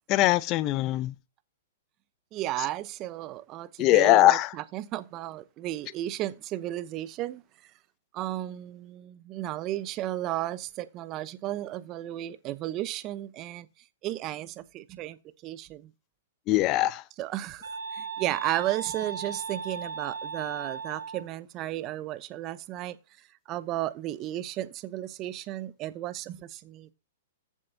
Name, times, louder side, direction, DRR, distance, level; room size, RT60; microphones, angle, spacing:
voice 1, 0.1-1.1 3.8-4.5 16.5-17.0, left 15 dB, 35° left, 0.6 m, -21 dB
voice 2, 2.3-7.4 8.1-13.7 14.0-15.2 15.4-15.9 17.2-23.0 23.5-26.9, right 14 dB, 35° right, 0.8 m, -34 dB
sound 1, 17.6-21.3, right 5 dB, 85° right, 2.8 m, -37 dB
14.5 x 7.4 x 2.8 m
hypercardioid pair, 120°, 0 cm